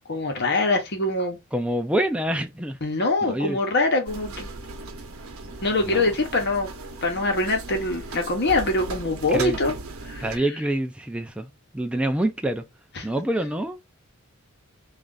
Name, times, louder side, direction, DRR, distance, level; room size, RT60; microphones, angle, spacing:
voice 1, 0.1-1.4 2.8-4.5 5.4-6.7 7.0-9.7 10.0-10.4 13.0-13.1, left 2 dB, 50° left, 1.1 m, -24 dB
voice 2, 1.5-2.8 3.2-3.6 5.8-6.0 9.3-9.6 10.2-12.6 13.0-13.8, right 1 dB, 5° right, 0.3 m, -26 dB
sound 1, 4.1-10.4, right 3 dB, 75° right, 0.8 m, -37 dB
3.1 x 2.5 x 3.8 m
head